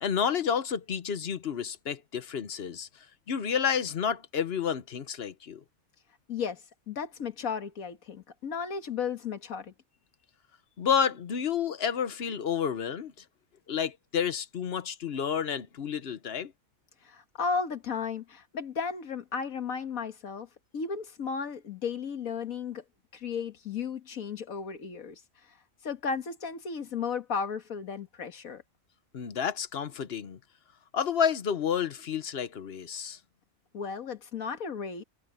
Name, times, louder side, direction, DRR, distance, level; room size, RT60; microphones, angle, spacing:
voice 1, 0.0-5.6 10.8-13.2 13.7-16.5 29.1-30.4 30.9-33.2, left 7 dB, 50° left, 1.1 m, -30 dB
voice 2, 6.3-9.7 17.0-20.5 20.7-22.8 23.1-25.2 25.8-28.6 33.7-35.0, left 6 dB, 90° left, 2.0 m, -34 dB
omnidirectional pair, 1.4 m